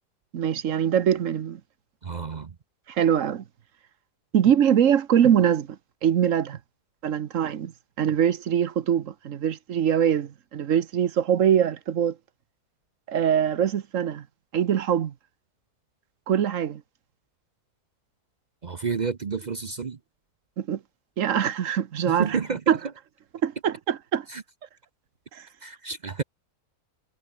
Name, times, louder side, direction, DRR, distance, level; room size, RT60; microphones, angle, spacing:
voice 1, 0.3-1.6 2.9-3.4 4.3-5.7 6.0-6.6 7.0-7.7 8.0-12.1 13.1-14.2 14.5-15.1 16.3-16.8 20.6-20.8 21.2-22.4 22.7-22.8 23.4-24.2 25.3-25.4, right 9 dB, 60° right, 1.2 m, -23 dB
voice 2, 2.0-2.5 18.6-20.0 22.1-22.6 24.3-24.4 25.6-26.2, right 5 dB, 40° right, 0.6 m, -30 dB
omnidirectional pair, 1.7 m